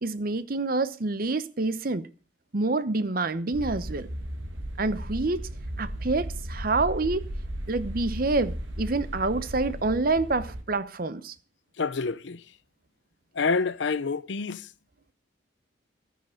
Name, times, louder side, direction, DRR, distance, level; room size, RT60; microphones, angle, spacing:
voice 1, 0.0-2.1 2.5-4.1 4.8-5.4 5.8-7.2 7.7-11.3, right 3 dB, 50° right, 0.8 m, -27 dB
sound 1, 3.5-10.6, equal, 80° right, 2.1 m, -35 dB
voice 2, 11.8-12.4 13.3-14.7, left 4 dB, 70° left, 0.7 m, -27 dB
13.0 x 9.2 x 6.3 m
head